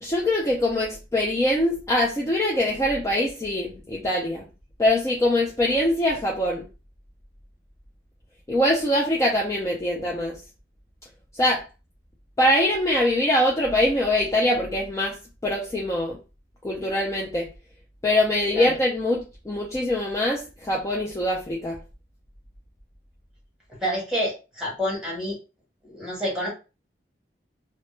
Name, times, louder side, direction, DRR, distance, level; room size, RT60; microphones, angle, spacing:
voice 1, 0.0-4.4 4.8-6.7 8.5-10.4 11.3-11.6 12.4-15.2 15.4-16.2 16.6-17.5 18.0-21.8, left 1 dB, 15° left, 0.4 m, -23 dB
voice 2, 23.8-25.4 25.8-26.5, equal, 5° right, 1.2 m, -28 dB
2.1 x 2.1 x 3.0 m
head